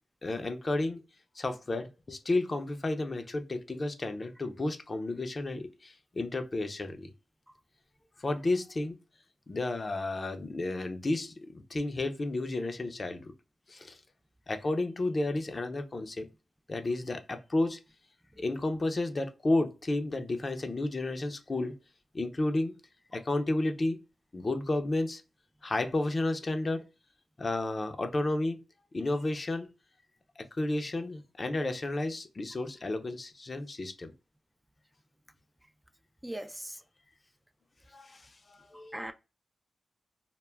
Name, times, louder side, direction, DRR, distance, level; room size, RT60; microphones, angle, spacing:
voice 1, 0.2-1.0 1.4-7.1 8.2-9.0 9.5-13.2 13.7-14.0 14.5-16.3 16.7-17.8 18.4-21.8 22.1-22.8 23.1-24.0 24.3-25.2 25.6-26.8 27.4-28.6 28.9-29.7 30.4-34.1 37.9-39.1, left 2 dB, 45° left, 0.5 m, -32 dB
voice 2, 36.2-36.8 38.9-39.1, right 1 dB, 10° right, 0.3 m, -38 dB
2.2 x 2.1 x 3.2 m
cardioid pair, 45°, 0 cm